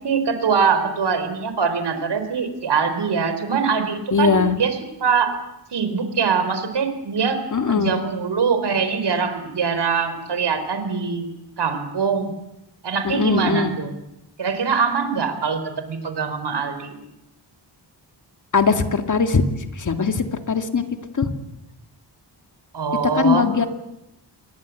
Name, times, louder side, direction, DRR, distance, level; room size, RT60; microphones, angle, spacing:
voice 1, 0.0-5.4 5.7-7.4 7.7-11.3 11.6-12.3 12.8-13.9 14.4-17.0 22.7-23.5, right 5 dB, 70° right, 9 dB, 4.2 m, -23 dB
voice 2, 4.1-4.5 7.5-8.0 13.0-13.7 18.5-20.9 21.1-21.3 23.2-23.7, left 5 dB, 45° left, 7 dB, 2.3 m, -20 dB
28.0 x 22.5 x 8.4 m, 0.89 s
wide cardioid pair, 150°, 43 cm